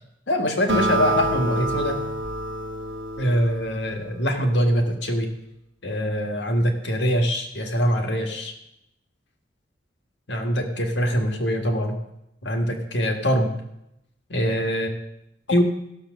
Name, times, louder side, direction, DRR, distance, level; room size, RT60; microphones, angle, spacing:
voice 1, 0.3-2.0 3.2-5.3 5.8-8.5 10.3-12.0 12.4-13.5 14.3-14.9 15.5-15.6, equal, 65° left, 3 dB, 1.6 m, -23 dB
Acoustic guitar, 0.7-4.3, right 1 dB, 70° right, 1.1 m, -27 dB
15.0 x 6.6 x 6.4 m, 0.83 s
head